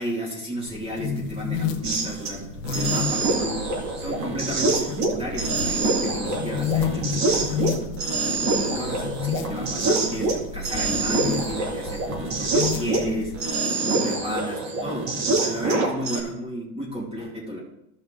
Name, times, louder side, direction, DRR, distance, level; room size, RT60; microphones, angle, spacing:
voice 1, 0.0-8.0 8.5-17.6, equal, 10° right, -4 dB, 2.5 m, -33 dB
sound 1, 0.7-13.5, left 7 dB, 85° left, 1.3 m, -32 dB
sound 2, 1.8-2.3 2.6-13.1 13.3-16.2, right 3 dB, 35° right, 2.1 m, -25 dB
15.0 x 5.4 x 3.7 m, 0.81 s
supercardioid pair, 150°, 47 cm